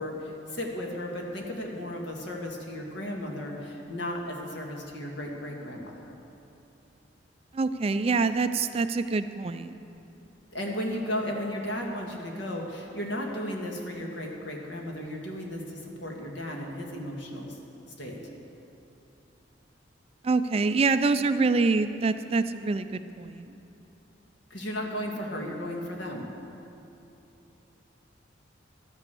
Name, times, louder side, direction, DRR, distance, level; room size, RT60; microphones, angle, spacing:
voice 1, 0.0-6.1 10.5-17.6 18.0-18.2 24.5-26.3, left 1 dB, 65° left, 0 dB, 1.9 m, -35 dB
voice 2, 7.5-9.7 20.2-23.5, right 4 dB, 30° right, 11 dB, 0.3 m, -25 dB
13.0 x 9.0 x 6.9 m, 2.9 s
head